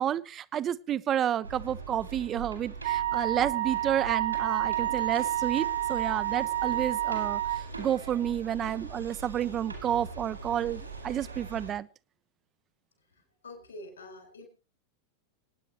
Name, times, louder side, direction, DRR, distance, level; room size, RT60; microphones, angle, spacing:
voice 1, 0.0-7.4 7.8-11.9, right 10 dB, 30° right, 18 dB, 0.7 m, -30 dB
sound 1, 1.4-11.7, right 4 dB, 85° right, 4.7 m, -42 dB
Wind instrument woodwind instrument, 2.8-7.7, right 13 dB, 65° right, 1.3 m, -29 dB
voice 2, 13.0-14.5, left 1 dB, 70° left, 6 dB, 5.6 m, -47 dB
27.0 x 9.7 x 3.1 m, 0.34 s
figure-of-eight pair, 90°, 0 cm